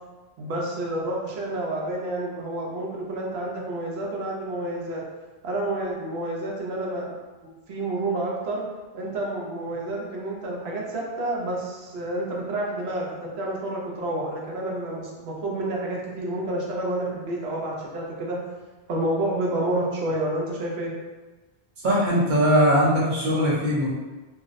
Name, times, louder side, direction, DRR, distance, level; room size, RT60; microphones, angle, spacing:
voice 1, 0.4-5.0 5.4-7.1 7.4-8.6 8.9-13.1 13.4-18.4 18.9-20.9, right 1 dB, 80° right, -2 dB, 0.9 m, -29 dB
voice 2, 21.8-23.9, equal, 50° right, -5 dB, 0.8 m, -20 dB
2.5 x 2.0 x 2.4 m, 1.2 s
omnidirectional pair, 1.1 m